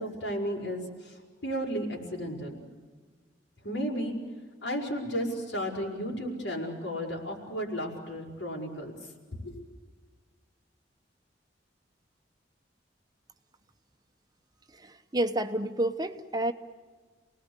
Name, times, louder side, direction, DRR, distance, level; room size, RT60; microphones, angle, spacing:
voice 1, 0.0-2.6 3.6-4.1 4.6-8.9 9.4-9.7, equal, 80° left, 0 dB, 6.1 m, -34 dB
voice 2, 14.7-16.5, right 1 dB, 20° right, 8 dB, 1.1 m, -30 dB
29.0 x 19.5 x 8.3 m, 1.5 s
head